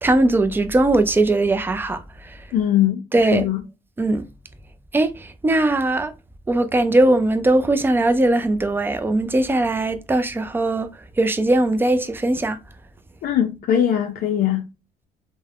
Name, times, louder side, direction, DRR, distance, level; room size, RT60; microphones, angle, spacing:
voice 1, 0.0-2.4 3.1-3.5 4.0-4.3 4.9-6.1 6.5-12.6, right 2 dB, 10° right, 0.3 m, -20 dB
voice 2, 2.5-3.0 3.3-3.6 13.2-14.6, left 10 dB, 60° left, 0.4 m, -20 dB
3.2 x 2.1 x 2.3 m
cardioid pair, 110°, 17 cm